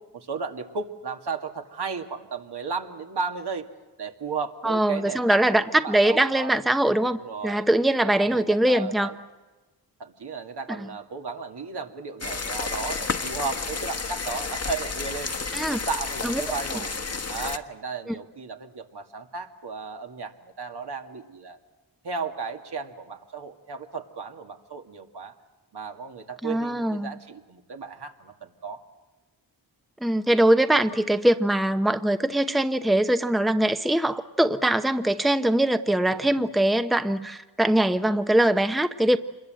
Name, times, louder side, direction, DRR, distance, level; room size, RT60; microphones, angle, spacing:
voice 1, 0.1-3.7 4.0-5.4 5.7-6.5 7.0-7.7 8.2-9.1 10.0-15.3 15.7-16.9 17.3-21.6 22.0-25.3 25.7-28.8, right 5 dB, 70° right, 4 dB, 2.2 m, -34 dB
voice 2, 4.6-9.1 10.7-10.9 15.5-15.8 16.2-16.4 18.1-18.2 26.4-27.1 30.0-39.2, right 1 dB, ahead, 9 dB, 0.9 m, -22 dB
sound 1, 12.2-17.6, left 4 dB, 35° left, 1.4 m, -31 dB
26.5 x 21.5 x 7.8 m, 1.2 s
cardioid pair, 55°, 42 cm